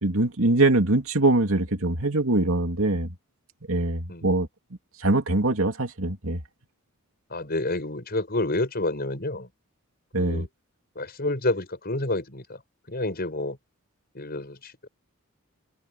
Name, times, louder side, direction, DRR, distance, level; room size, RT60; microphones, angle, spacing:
voice 1, 0.0-3.1 3.7-4.5 5.0-6.4 10.1-10.5, right 2 dB, 70° right, 2.9 m, -23 dB
voice 2, 7.3-9.5 10.2-10.5 11.0-12.6 12.9-13.6 14.1-14.9, left 2 dB, 45° left, 6.8 m, -29 dB
head